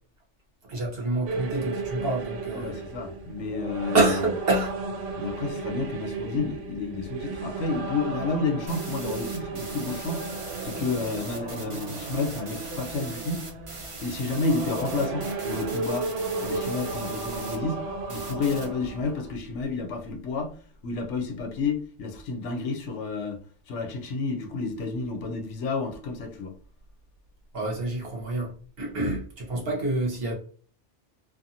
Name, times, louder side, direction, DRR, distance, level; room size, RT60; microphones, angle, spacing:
voice 1, 0.7-2.7 3.9-4.8 16.8-16.9 27.5-28.5 28.8-30.3, right 2 dB, 55° right, 1.1 m, -27 dB
sound 1, 1.2-19.4, right 3 dB, 85° right, 0.9 m, -34 dB
voice 2, 2.5-4.1 5.2-10.2 10.6-13.5 14.0-16.1 16.4-17.8 18.1-23.4 23.7-26.5 29.5-29.6, left 4 dB, 80° left, 0.9 m, -30 dB
sound 2, 8.7-17.6 18.1-18.7, right 2 dB, 35° right, 0.5 m, -41 dB
2.5 x 2.5 x 2.7 m
omnidirectional pair, 1.2 m